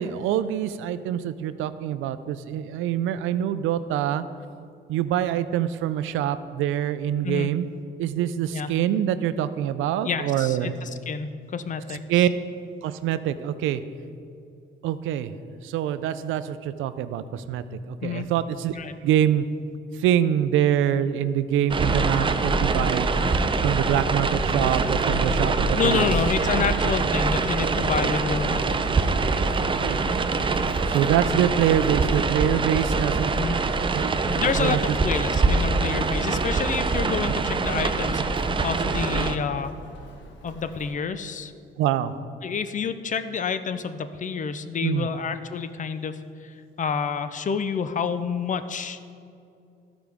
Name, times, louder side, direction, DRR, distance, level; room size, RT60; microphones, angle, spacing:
voice 1, 0.0-4.2 4.9-7.7 8.0-10.7 12.1-12.3 12.8-13.8 14.8-15.3 15.6-18.8 19.0-19.5 19.9-23.1 23.6-26.1 29.2-29.4 29.6-30.0 30.9-33.4 33.9-34.1 34.6-35.0 41.8-42.1 44.8-45.1, right 10 dB, 90° right, 13 dB, 0.4 m, -25 dB
voice 2, 10.0-12.2 18.0-18.3 18.7-19.0 25.8-28.8 33.3-33.6 34.3-39.7 40.4-41.5 42.4-49.1, left 6 dB, 40° left, 11 dB, 0.5 m, -29 dB
sound 1, 21.7-39.4, right 3 dB, 25° right, 0.5 m, -24 dB
Human voice, 26.1-40.9, left 3 dB, 70° left, 1.2 m, -46 dB
14.5 x 4.9 x 3.5 m, 2.6 s
cardioid pair, 90°, 20 cm